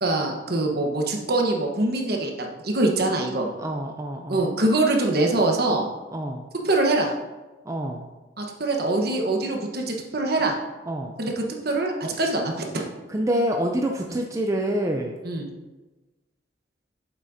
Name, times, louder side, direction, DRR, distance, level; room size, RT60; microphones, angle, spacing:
voice 1, 0.0-3.5 4.3-5.9 6.6-7.1 8.4-10.5 11.2-12.9 14.1-14.2 15.2-15.5, right 2 dB, 55° right, 1 dB, 1.2 m, -24 dB
voice 2, 3.6-4.5 6.1-6.5 7.7-8.1 10.9-11.1 13.1-15.2, right 1 dB, 15° right, 2 dB, 0.5 m, -27 dB
8.5 x 7.3 x 2.7 m, 1.2 s
head